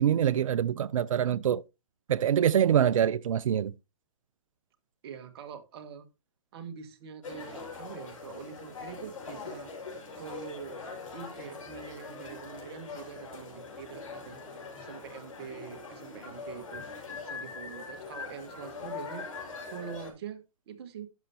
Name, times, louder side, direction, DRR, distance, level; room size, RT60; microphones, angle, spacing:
voice 1, 0.0-1.6 2.1-3.7, right 9 dB, 80° right, 0.5 m, -25 dB
voice 2, 5.0-6.1 6.5-9.7 10.1-10.8 11.1-14.4 14.7-19.3 19.7-21.1, right 7 dB, 50° right, 1.6 m, -44 dB
sound 1, 7.2-20.1, left 4 dB, 75° left, 5.7 m, -42 dB
11.5 x 7.0 x 2.9 m
hypercardioid pair, 140°, 17 cm